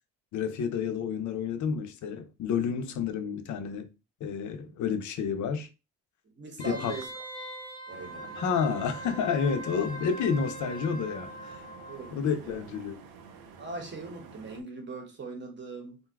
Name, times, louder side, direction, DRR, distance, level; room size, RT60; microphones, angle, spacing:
voice 1, 0.3-3.9 4.2-5.7 6.6-6.9 8.4-11.6 12.1-13.0, left 6 dB, 55° left, 0.6 m, -30 dB
voice 2, 6.2-7.1 7.9-8.4 11.9-12.1 12.4-12.7 13.6-16.0, right 3 dB, 30° right, 0.9 m, -40 dB
Wind instrument woodwind instrument, 6.6-12.1 12.5-12.6, right 1 dB, 15° left, 0.6 m, -42 dB
sound 1, 7.9-14.6, right 6 dB, 90° right, 0.7 m, -49 dB
2.6 x 2.3 x 3.4 m
cardioid pair, 135°, 35 cm